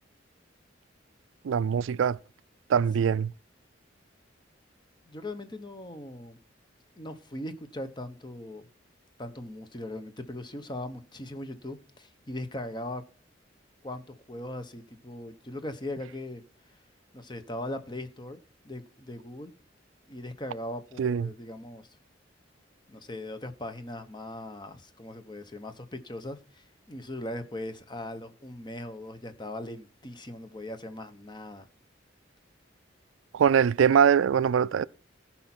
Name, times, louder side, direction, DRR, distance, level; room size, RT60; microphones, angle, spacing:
voice 1, 1.4-2.2 2.7-3.3 21.0-21.3 33.3-34.9, right 7 dB, 90° right, 0.4 m, -22 dB
voice 2, 5.1-6.4 7.0-8.7 9.2-13.0 13.8-16.4 17.1-19.5 20.1-21.9 22.9-31.7, left 1 dB, 25° left, 1.0 m, -39 dB
15.5 x 5.8 x 4.4 m
head